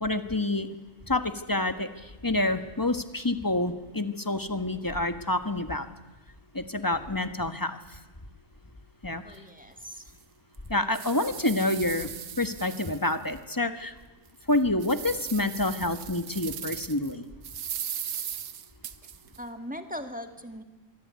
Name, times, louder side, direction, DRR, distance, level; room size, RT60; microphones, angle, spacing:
voice 1, 0.0-0.7 1.0-5.9 6.5-8.0 9.0-9.4 10.7-12.1 12.4-13.9 14.5-17.2, left 2 dB, 15° left, 9 dB, 1.4 m, -28 dB
voice 2, 9.2-10.1 19.4-20.6, equal, 5° right, 7 dB, 2.0 m, -39 dB
sound 1, 9.3-9.4 9.9-10.0 10.5-13.4 13.8-13.9 14.4-17.1 17.4-19.4, right 9 dB, 75° right, 1.6 m, -38 dB
26.0 x 22.5 x 9.5 m, 1.2 s
omnidirectional pair, 1.7 m